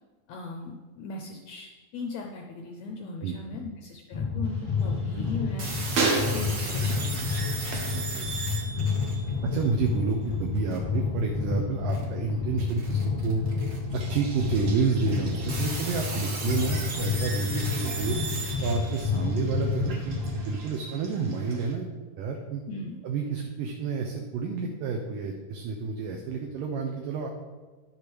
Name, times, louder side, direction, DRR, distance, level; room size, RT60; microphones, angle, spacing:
voice 1, 0.3-5.7 6.3-7.5 18.0-18.4 22.7-23.0, left 3 dB, 75° left, 2 dB, 1.6 m, -38 dB
sound 1, 4.1-20.5, left 4 dB, 40° left, 0.7 m, -30 dB
sound 2, 4.4-8.9 9.1-9.7 13.8-21.7, right 3 dB, 60° right, 1.5 m, -37 dB
sound 3, 5.6-9.7 10.5-10.8 11.9-12.0 12.6-13.8 14.5-14.6 15.1-19.3, right 3 dB, 40° right, 1.7 m, -36 dB
voice 2, 7.9-8.3 8.7-8.9 9.4-13.4 13.9-18.2 18.6-21.9 22.2-22.6 23.0-27.3, right 5 dB, 75° right, 2 dB, 2.5 m, -30 dB
10.5 x 6.6 x 6.1 m, 1.3 s
omnidirectional pair, 4.1 m